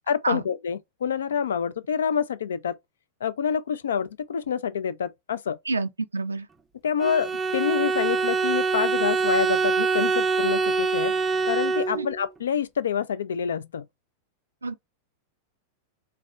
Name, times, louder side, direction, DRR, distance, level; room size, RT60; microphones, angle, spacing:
voice 1, 0.1-2.8 3.2-5.6 6.8-11.1 11.4-13.9, left 7 dB, 65° left, 0.3 m, -27 dB
voice 2, 5.7-6.5 11.9-12.1 14.6-14.7, right 3 dB, 80° right, 0.4 m, -28 dB
Bowed string instrument, 7.0-12.3, right 4 dB, 10° right, 0.5 m, -24 dB
4.0 x 2.2 x 2.3 m
figure-of-eight pair, 90°, 0 cm